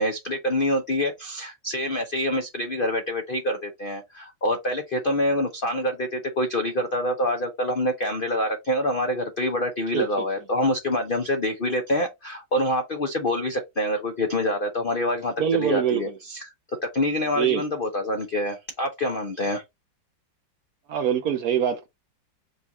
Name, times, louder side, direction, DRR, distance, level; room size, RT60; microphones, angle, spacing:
voice 1, 0.0-19.6, left 1 dB, 70° left, 0.5 m, -26 dB
voice 2, 9.9-10.2 15.4-16.0 17.3-17.6 20.9-21.9, right 9 dB, 70° right, 0.9 m, -24 dB
5.4 x 2.4 x 4.1 m
omnidirectional pair, 2.0 m